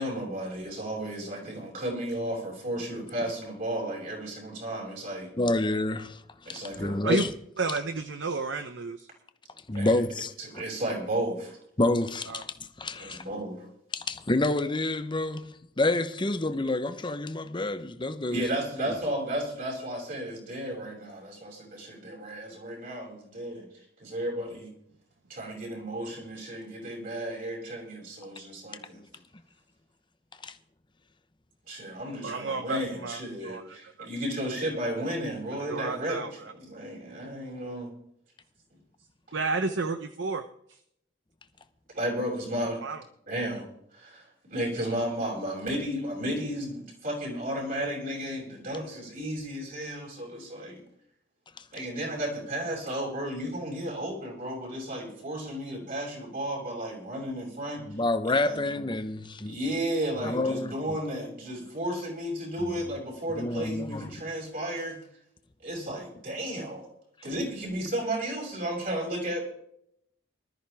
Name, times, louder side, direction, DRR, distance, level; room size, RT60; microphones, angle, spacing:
voice 1, 0.0-5.3 6.5-7.0 9.7-10.0 10.4-11.6 13.0-13.6 18.3-23.7 24.0-24.7 25.3-29.0 31.7-37.9 41.9-42.8 43.3-50.8 51.7-57.8 58.4-58.6 59.5-65.0 65.6-66.9 67.2-69.4, right 1 dB, 50° right, 6.9 m, -33 dB
voice 2, 5.4-7.3 9.7-10.6 11.8-13.2 13.9-15.4 15.8-18.5 28.9-29.1 30.4-30.5 57.9-59.6 60.2-60.7 62.6-62.8 63.3-64.1, left 2 dB, 25° left, 1.0 m, -28 dB
voice 3, 7.6-9.1 12.3-12.4 32.2-34.1 35.7-36.5 39.3-40.8 42.8-43.0, right 3 dB, 70° right, 0.8 m, -31 dB
20.0 x 13.5 x 3.5 m
head